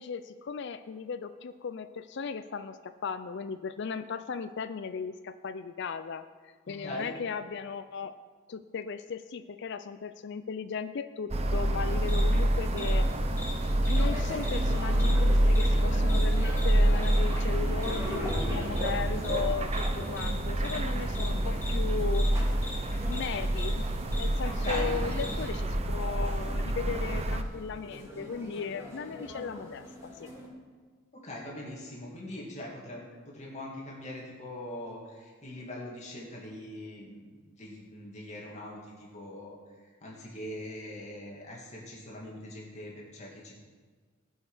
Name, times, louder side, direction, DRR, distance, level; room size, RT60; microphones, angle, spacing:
voice 1, 0.0-8.1 8.5-13.1 13.9-22.5 23.1-23.8 24.2-30.3, left 5 dB, 55° left, 10 dB, 0.4 m, -37 dB
voice 2, 6.7-7.1 24.5-24.9 31.1-37.3 37.5-43.5, left 1 dB, 35° left, -3 dB, 2.3 m, -42 dB
sound 1, 11.3-27.4, right 1 dB, 30° right, 0.6 m, -27 dB
sound 2, 11.8-25.5, left 2 dB, 10° left, 2.3 m, -43 dB
sound 3, 13.0-30.5, left 1 dB, 15° right, 2.2 m, -42 dB
18.5 x 6.3 x 5.0 m, 1.5 s
head